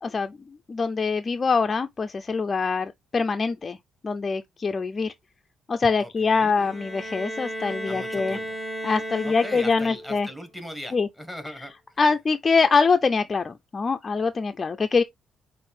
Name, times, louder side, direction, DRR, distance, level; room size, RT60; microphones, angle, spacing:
voice 1, 0.0-0.4 0.7-3.8 4.0-5.1 5.7-8.4 8.8-10.3 10.9-11.1 12.0-15.0, left 4 dB, 35° left, 0.4 m, -24 dB
voice 2, 6.0-6.5 7.9-8.6 9.2-12.0, equal, ahead, 1.6 m, -39 dB
Bowed string instrument, 6.6-10.2, equal, 25° right, 2.1 m, -34 dB
6.3 x 2.5 x 3.2 m
cardioid pair, 90°, 0 cm